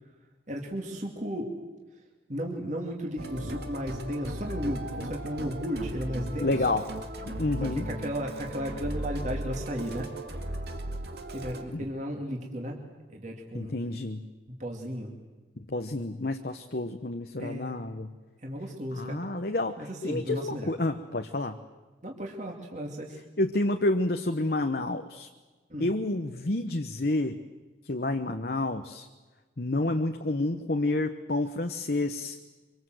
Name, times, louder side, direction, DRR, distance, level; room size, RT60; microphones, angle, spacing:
voice 1, 0.5-1.5 2.3-6.5 7.6-10.1 11.3-12.8 13.1-13.7 14.6-15.1 17.4-17.7 18.4-19.3 19.8-20.7 22.0-23.2 25.7-25.9, equal, 40° right, 1 dB, 2.6 m, -34 dB
Musical instrument, 3.2-11.6, right 1 dB, 60° right, 2.3 m, -36 dB
voice 2, 6.4-6.8 7.3-7.8 11.7-11.8 13.5-14.3 15.6-18.1 18.9-21.6 23.4-25.3 25.8-27.4 27.8-29.1 29.6-32.4, left 2 dB, 55° left, 6 dB, 1.0 m, -29 dB
25.5 x 24.0 x 7.9 m, 1.3 s
head